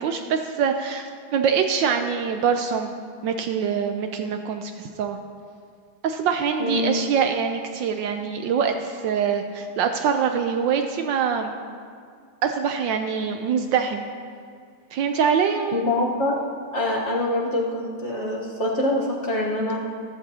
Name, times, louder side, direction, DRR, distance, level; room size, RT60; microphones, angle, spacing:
voice 1, 0.0-2.9 3.2-5.2 6.0-11.5 12.4-14.1 14.9-15.8, right 7 dB, 75° right, 6 dB, 1.2 m, -24 dB
voice 2, 6.6-7.0 15.7-16.4 16.7-19.9, left 1 dB, 40° left, -3 dB, 1.2 m, -25 dB
14.5 x 12.5 x 2.8 m, 2.1 s
omnidirectional pair, 2.3 m